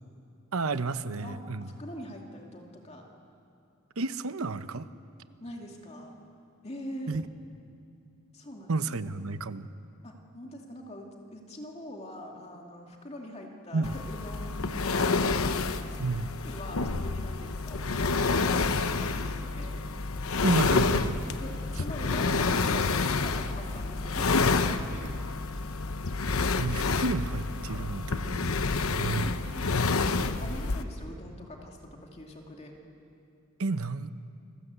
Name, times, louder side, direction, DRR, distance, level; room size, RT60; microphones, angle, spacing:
voice 1, 0.5-1.7 4.0-4.9 7.1-7.2 8.7-9.7 13.7-13.9 16.0-16.3 20.4-21.2 26.6-28.5 28.9-29.3 33.6-34.1, right 3 dB, 85° right, 12 dB, 0.9 m, -31 dB
voice 2, 1.0-3.1 5.4-6.1 6.6-7.2 8.3-9.0 10.0-15.6 15.9-16.0 16.4-19.8 21.4-25.2 29.2-32.7, equal, 30° left, 1 dB, 2.4 m, -43 dB
sound 1, 13.8-30.8, left 3 dB, 85° left, 0.9 m, -28 dB
28.5 x 20.0 x 8.1 m, 2.6 s
head